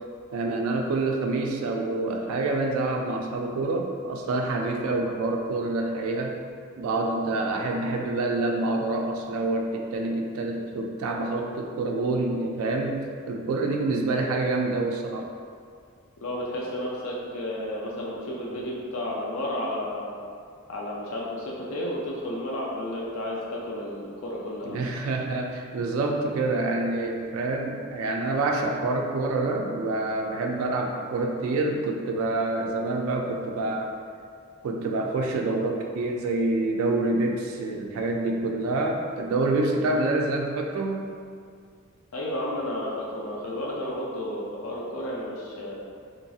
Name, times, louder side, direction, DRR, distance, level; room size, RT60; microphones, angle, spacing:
voice 1, 0.3-6.4 6.8-15.3 24.6-33.9 34.6-41.1, right 2 dB, 75° right, 1 dB, 0.3 m, -27 dB
voice 2, 16.2-20.1 20.7-24.8 42.1-45.8, left 1 dB, 70° left, -4 dB, 0.4 m, -32 dB
2.9 x 2.6 x 2.3 m, 2.2 s
head